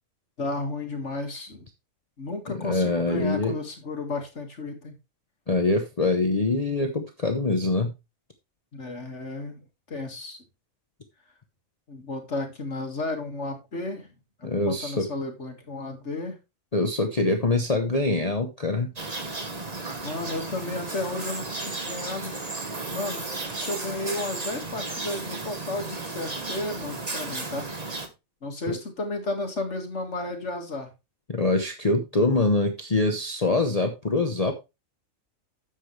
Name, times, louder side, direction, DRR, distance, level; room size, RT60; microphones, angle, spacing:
voice 1, 0.4-1.7 2.2-4.9 8.7-10.4 11.9-14.1 14.4-16.4 20.0-22.4 22.9-23.2 23.5-27.7 28.4-30.9, left 2 dB, 55° left, 4 dB, 2.4 m, -33 dB
voice 2, 2.5-3.5 5.5-7.9 14.4-15.1 16.7-18.9 28.7-28.8 31.3-34.5, left 2 dB, 30° left, 5 dB, 0.9 m, -24 dB
sound 1, 19.0-28.1, right 3 dB, 30° right, 1.4 m, -34 dB
9.9 x 7.6 x 3.3 m, 0.25 s
omnidirectional pair, 1.4 m